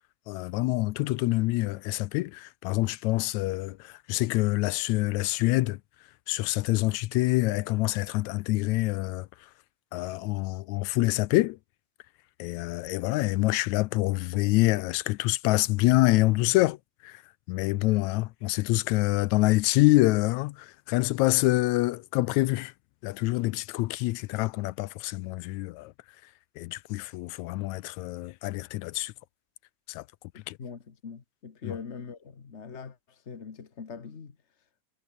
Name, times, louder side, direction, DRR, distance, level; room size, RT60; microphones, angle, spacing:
voice 1, 0.3-5.8 6.3-9.5 9.9-11.6 12.4-16.8 17.0-17.2 17.5-22.7 23.0-25.9 26.6-29.1 29.9-30.1 30.5-30.6 31.6-31.8, left 19 dB, 80° left, 1.9 m, -26 dB
voice 2, 30.3-34.3, left 5 dB, 40° left, 1.0 m, -42 dB
omnidirectional pair, 3.4 m